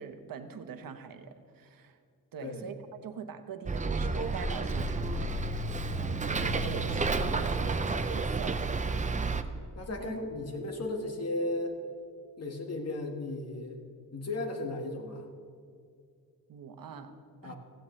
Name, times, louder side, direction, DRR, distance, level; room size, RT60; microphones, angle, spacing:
voice 1, 0.0-2.0 2.3-8.7 9.2-9.4 10.0-10.2 16.5-17.2 17.4-17.5, right 6 dB, 65° right, 8 dB, 1.0 m, -43 dB
Bus, 3.7-9.4, right 3 dB, 20° right, 0.5 m, -30 dB
voice 2, 9.8-11.8 12.4-13.8 14.1-15.2 17.4-17.5, left 2 dB, 45° left, 3 dB, 1.6 m, -35 dB
16.5 x 15.0 x 3.2 m, 2.3 s
wide cardioid pair, 120°, 36 cm